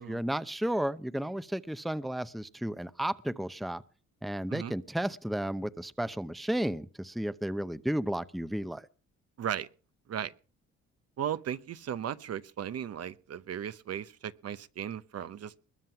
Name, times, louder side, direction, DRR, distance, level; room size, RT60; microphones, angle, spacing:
voice 1, 0.0-3.8 4.2-8.9, right 1 dB, ahead, 0.7 m, -33 dB
voice 2, 11.2-15.5, right 9 dB, 55° right, 0.9 m, -36 dB
21.0 x 7.6 x 5.8 m
cardioid pair, 90°, 30 cm